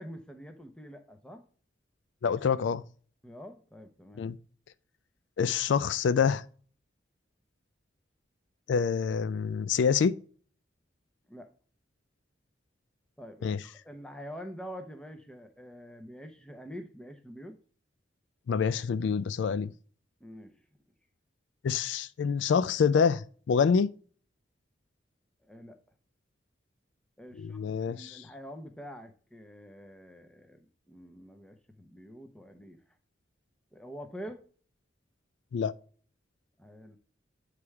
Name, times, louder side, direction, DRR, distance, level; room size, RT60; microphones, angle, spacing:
voice 1, 0.0-1.4 3.2-4.2 11.3-11.5 13.2-17.6 20.2-20.6 25.4-25.8 27.2-32.8 33.7-34.4 36.6-37.0, equal, 5° left, 0.7 m, -46 dB
voice 2, 2.2-2.8 4.2-4.4 5.4-6.4 8.7-10.2 13.4-13.6 18.5-19.7 21.6-23.9 27.4-28.2 35.5-35.7, left 6 dB, 80° left, 0.3 m, -26 dB
8.5 x 3.3 x 4.7 m
head